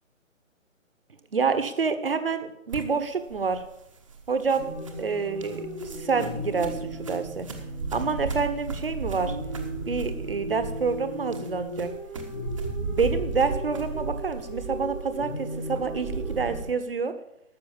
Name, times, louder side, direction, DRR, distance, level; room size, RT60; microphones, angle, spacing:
voice 1, 1.3-3.6 4.3-4.7 5.0-7.5 7.9-9.4 9.9-11.9 12.7-17.1, right 5 dB, 45° right, 10 dB, 1.2 m, -28 dB
sound 1, 2.7-16.7, right 4 dB, 25° right, 1.0 m, -36 dB
sound 2, 4.6-16.6, equal, 5° left, 0.8 m, -37 dB
12.5 x 6.8 x 7.2 m, 0.80 s
figure-of-eight pair, 150°, 40 cm